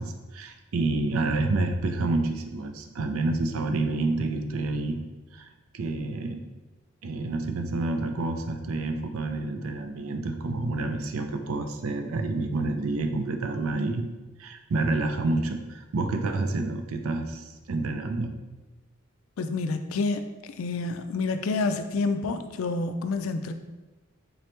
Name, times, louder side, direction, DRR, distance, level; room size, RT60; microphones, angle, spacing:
voice 1, 0.0-5.0 5.3-6.4 7.0-14.1 14.4-18.3, right 2 dB, 85° right, 6 dB, 0.4 m, -28 dB
voice 2, 19.4-20.2 20.6-23.5, left 3 dB, 75° left, 9 dB, 0.3 m, -28 dB
3.8 x 3.2 x 3.0 m, 1.1 s
head